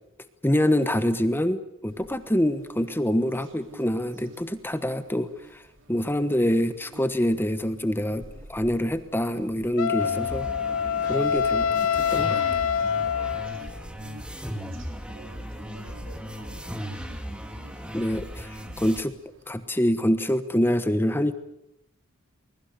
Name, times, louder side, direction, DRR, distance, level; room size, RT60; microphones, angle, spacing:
voice 1, 0.4-5.6 5.9-8.2 8.5-10.5 11.0-11.6 12.1-12.4 17.9-19.1 19.5-21.3, equal, 10° left, 10 dB, 1.2 m, -25 dB
sound 1, 1.9-19.7, right 1 dB, 60° right, 3.9 m, -52 dB
Wind instrument woodwind instrument, 9.8-13.7, left 7 dB, 90° left, 0.8 m, -25 dB
sound 2, 10.0-19.0, equal, 5° right, 2.3 m, -37 dB
voice 2, 11.3-12.0 15.1-17.0, right 2 dB, 85° right, 7 dB, 5.5 m, -51 dB
24.0 x 22.0 x 6.8 m, 0.79 s
head